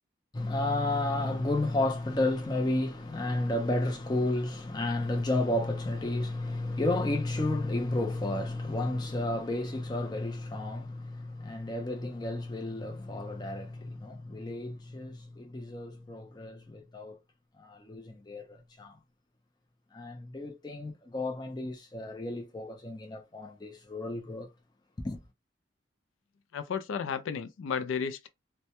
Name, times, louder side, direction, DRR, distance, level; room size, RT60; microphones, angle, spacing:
voice 1, 0.3-17.2 17.6-18.9 19.9-24.5 25.0-25.2, left 2 dB, 20° left, 0.4 m, -32 dB
voice 2, 26.5-28.3, left 6 dB, 90° left, 0.4 m, -33 dB
2.1 x 2.1 x 2.8 m
head